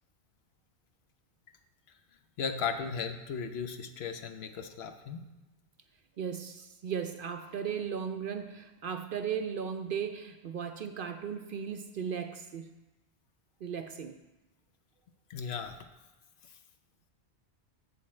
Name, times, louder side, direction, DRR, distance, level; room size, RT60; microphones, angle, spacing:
voice 1, 2.4-5.2 15.3-15.8, left 6 dB, 65° left, 8 dB, 0.9 m, -36 dB
voice 2, 6.2-12.7 13.6-14.2, right 7 dB, 60° right, 7 dB, 0.6 m, -36 dB
8.3 x 7.5 x 4.3 m, 1.1 s
omnidirectional pair, 1.2 m